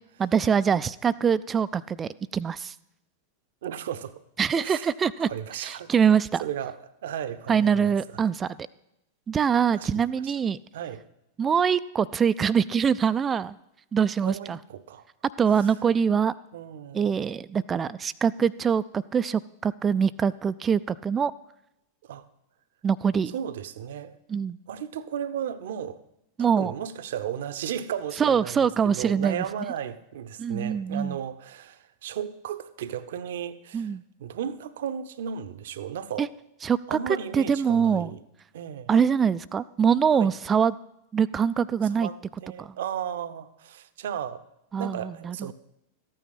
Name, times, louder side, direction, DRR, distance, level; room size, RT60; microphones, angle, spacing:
voice 1, 0.2-2.7 4.4-5.3 5.6-6.4 7.5-8.6 9.3-10.6 11.4-13.6 13.9-14.6 15.4-16.3 16.9-21.3 22.8-23.3 24.3-24.6 26.4-26.7 28.2-29.4 30.4-31.2 33.7-34.0 36.2-36.3 36.6-38.1 38.9-40.7 41.1-42.1 42.6-42.7 44.7-45.5, right 7 dB, 20° right, 0.4 m, -24 dB
voice 2, 3.6-4.2 4.6-4.9 5.3-5.9 6.4-7.9 9.7-10.3 10.7-11.0 14.2-15.0 16.5-17.3 22.0-22.2 23.3-24.2 24.7-26.0 26.4-28.6 28.8-33.9 34.2-36.3 36.9-38.2 38.5-38.9 40.1-40.3 41.9-44.4 44.8-45.5, right 9 dB, 60° right, 0.8 m, -35 dB
14.5 x 9.2 x 5.7 m
figure-of-eight pair, 90°, 0 cm